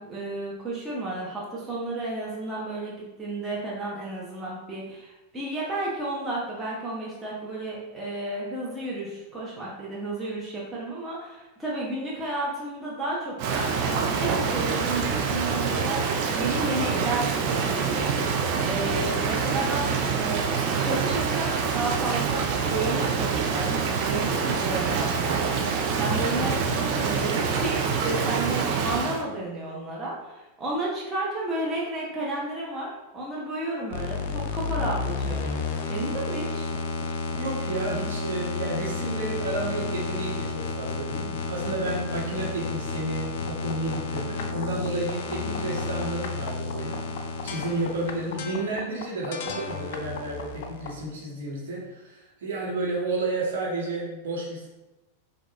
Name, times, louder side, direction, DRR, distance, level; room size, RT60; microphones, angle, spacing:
voice 1, 0.0-20.4 20.8-35.6 35.9-36.7, right 2 dB, 15° right, -6 dB, 1.0 m, -32 dB
Rain, 13.4-29.2, right 5 dB, 45° right, 0.5 m, -26 dB
sound 1, 33.9-51.0, left 4 dB, 50° left, 0.5 m, -32 dB
voice 2, 37.4-47.0 47.4-54.7, right 2 dB, 60° right, -4 dB, 1.3 m, -31 dB
5.8 x 2.5 x 3.0 m, 1.0 s
figure-of-eight pair, 90°, 0 cm